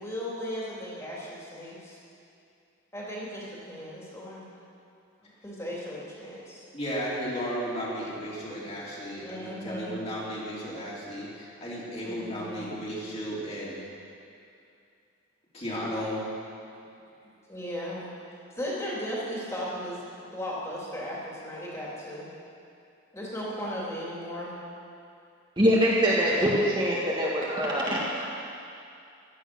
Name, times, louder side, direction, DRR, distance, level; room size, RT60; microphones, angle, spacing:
voice 1, 0.0-2.0 2.9-4.5 5.2-6.6 9.2-10.0 12.0-12.8 17.2-18.1 18.5-20.0 20.3-22.3 23.1-24.5, equal, 15° left, -6 dB, 3.2 m, -36 dB
voice 2, 6.7-13.8 15.5-16.3, equal, 30° left, -6 dB, 3.2 m, -34 dB
voice 3, 25.6-28.2, equal, 20° right, -5 dB, 1.8 m, -24 dB
15.5 x 12.5 x 6.3 m, 2.5 s
head